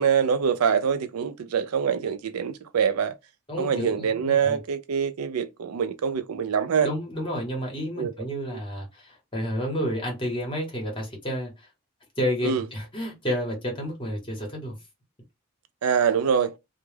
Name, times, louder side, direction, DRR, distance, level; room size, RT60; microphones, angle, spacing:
voice 1, 0.0-3.1 3.6-6.9 8.0-8.1 12.4-12.6 15.8-16.6, right 7 dB, 90° right, 0.4 m, -24 dB
voice 2, 3.5-4.6 6.8-11.7 12.2-14.8, equal, 25° left, 0.9 m, -30 dB
2.2 x 2.0 x 3.2 m
head